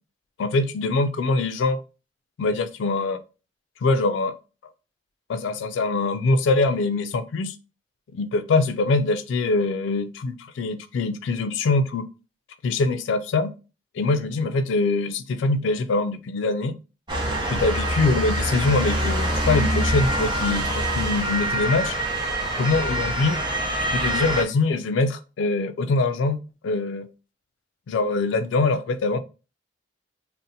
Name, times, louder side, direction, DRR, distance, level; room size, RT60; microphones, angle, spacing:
voice 1, 0.4-1.8 2.4-3.2 3.8-4.3 5.3-7.5 8.1-12.0 12.6-13.5 14.0-16.8 17.5-22.0 22.6-23.4 23.9-26.4 26.6-27.1 27.9-29.2, left 3 dB, 70° left, 0.3 m, -23 dB
Motor vehicle (road) / Siren, 17.1-24.4, right 1 dB, 25° right, 0.7 m, -25 dB
2.6 x 2.0 x 3.9 m
head